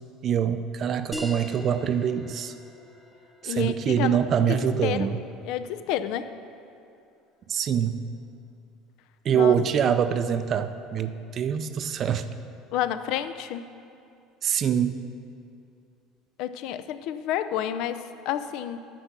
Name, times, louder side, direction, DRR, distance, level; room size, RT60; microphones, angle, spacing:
voice 1, 0.2-2.5 3.4-5.2 7.5-8.0 9.2-12.3 14.4-15.0, right 8 dB, 40° right, 10 dB, 0.4 m, -24 dB
sound 1, 1.1-6.2, equal, 5° left, 0.8 m, -42 dB
voice 2, 3.4-5.1 5.4-6.3 9.3-9.6 12.7-13.6 16.4-18.8, left 10 dB, 65° left, 11 dB, 0.5 m, -30 dB
9.9 x 6.8 x 6.0 m, 2.5 s
cardioid pair, 135°, 0 cm